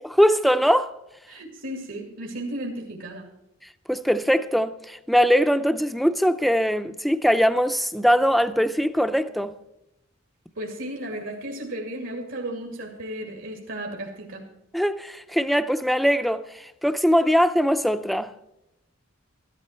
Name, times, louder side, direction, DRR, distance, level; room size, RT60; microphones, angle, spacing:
voice 1, 0.2-0.9 3.9-9.5 14.7-18.3, equal, ahead, 0.5 m, -21 dB
voice 2, 1.3-3.3 10.6-14.5, right 1 dB, 80° right, 2.4 m, -34 dB
14.0 x 13.0 x 4.4 m
head